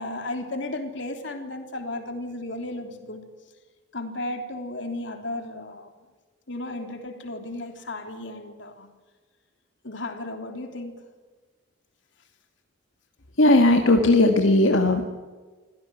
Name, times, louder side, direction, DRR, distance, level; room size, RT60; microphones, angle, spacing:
voice 1, 0.0-3.2 3.9-5.9 6.5-8.9 9.8-11.0, left 2 dB, 65° left, 5 dB, 3.6 m, -34 dB
voice 2, 13.4-15.1, left 2 dB, 85° left, 4 dB, 1.8 m, -17 dB
25.5 x 16.5 x 9.5 m, 1.3 s
head